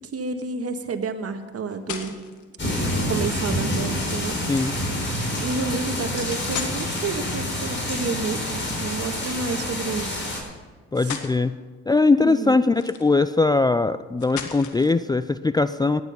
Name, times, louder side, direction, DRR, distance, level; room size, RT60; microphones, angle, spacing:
voice 1, 0.1-2.2 3.0-4.4 5.4-10.2 11.0-11.1 12.1-12.6, right 4 dB, 45° right, 7 dB, 1.7 m, -30 dB
sound 1, 1.4-2.4 4.4-4.8 6.3-7.6 9.5-9.8 10.5-10.6 10.9-11.4 12.7-13.3 14.2-15.0, left 8 dB, 65° left, 1.7 m, -36 dB
sound 2, 2.6-10.4, left 1 dB, 35° left, 5.6 m, -27 dB
voice 2, 10.9-11.5 11.9-16.0, left 3 dB, 15° left, 13 dB, 0.5 m, -20 dB
18.0 x 11.0 x 5.4 m, 1.5 s
hypercardioid pair, 60°, 32 cm